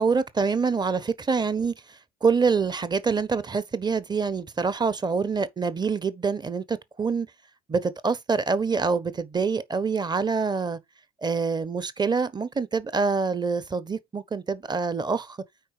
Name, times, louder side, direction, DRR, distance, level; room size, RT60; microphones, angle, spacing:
voice 1, 0.0-7.3 7.7-10.8 11.2-15.4, right 5 dB, 20° right, 1.2 m, -26 dB
9.3 x 4.4 x 4.9 m
hypercardioid pair, 70°, 19 cm